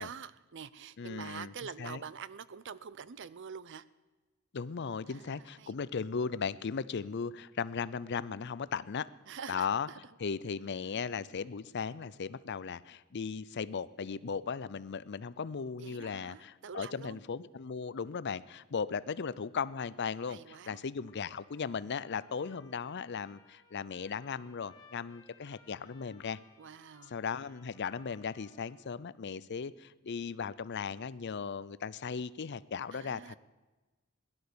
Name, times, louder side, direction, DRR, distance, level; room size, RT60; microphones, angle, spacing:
voice 1, 0.0-3.9 5.1-5.7 9.3-10.0 15.8-17.2 20.3-20.8 26.6-27.1 32.9-33.4, right 7 dB, 55° right, 17 dB, 0.6 m, -46 dB
voice 2, 1.0-1.5 1.8-2.0 4.5-9.1 9.5-9.9 10.2-26.4 27.1-33.4, left 6 dB, 55° left, 17 dB, 0.5 m, -37 dB
Trumpet, 21.0-29.0, left 4 dB, 15° left, 2.0 m, -63 dB
17.5 x 11.5 x 6.9 m, 1.2 s
head